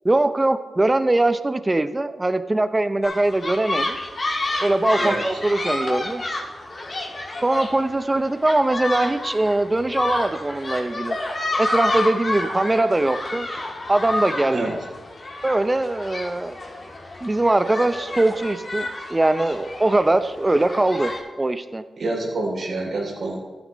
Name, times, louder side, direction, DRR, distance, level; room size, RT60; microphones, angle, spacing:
voice 1, 0.0-4.1 4.6-6.2 7.4-11.2 11.6-13.5 13.9-14.7 15.4-16.6 17.2-21.8, right 2 dB, 25° right, 11 dB, 0.7 m, -21 dB
sound 1, 3.0-21.2, left 2 dB, 50° left, 2.1 m, -29 dB
voice 2, 5.0-5.4 14.5-14.7 22.0-23.4, right 2 dB, 65° right, -1 dB, 3.2 m, -27 dB
14.0 x 9.3 x 3.1 m, 1.3 s
cardioid pair, 50°, 0 cm